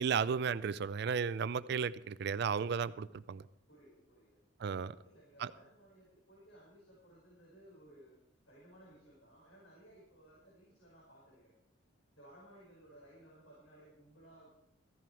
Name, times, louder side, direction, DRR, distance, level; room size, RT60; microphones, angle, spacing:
voice 1, 0.0-3.4 4.6-4.9 5.4-5.5, right 6 dB, 60° right, 16 dB, 0.4 m, -34 dB
voice 2, 3.7-4.4 4.8-8.1 8.5-11.5 12.1-14.5, right 1 dB, 80° left, -6 dB, 5.4 m, -60 dB
15.0 x 11.0 x 4.6 m, 0.81 s
head